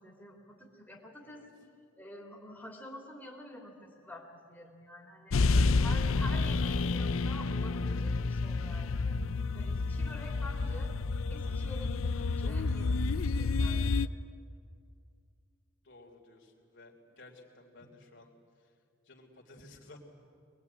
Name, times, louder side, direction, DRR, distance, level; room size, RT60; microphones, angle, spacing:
voice 1, 0.0-1.7 2.0-5.4 5.8-9.2 9.5-10.9 11.3-14.1 17.8-17.9, left 1 dB, 10° left, -2 dB, 3.0 m, -48 dB
sound 1, 5.3-14.1, left 3 dB, 85° left, 0.6 m, -29 dB
voice 2, 5.4-6.4 15.8-18.3 18.6-18.7 19.0-20.0, left 2 dB, 60° left, 1 dB, 3.2 m, -54 dB
23.5 x 21.0 x 9.6 m, 2.3 s
head